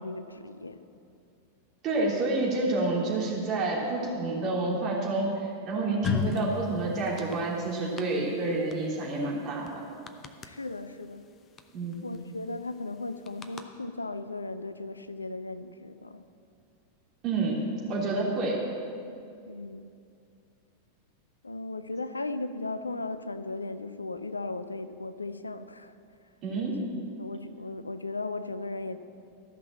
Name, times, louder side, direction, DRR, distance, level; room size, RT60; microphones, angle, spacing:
voice 1, 0.0-0.9 10.4-11.3 12.0-16.2 19.5-19.9 21.4-26.0 27.2-29.0, left 2 dB, 80° left, 12 dB, 0.5 m, -36 dB
voice 2, 1.8-9.7 11.7-12.1 17.2-18.6 26.4-26.8, right 2 dB, 35° right, -4 dB, 3.1 m, -29 dB
sound 1, 6.0-6.5 7.0-7.3 8.0-8.1 8.7-8.8 9.0-9.1 9.7-9.8 10.1-10.5 11.6-11.7 11.9-12.2 13.3-13.6, left 7 dB, 25° left, 0.7 m, -30 dB
14.5 x 5.9 x 7.4 m, 2.5 s
figure-of-eight pair, 90°, 0 cm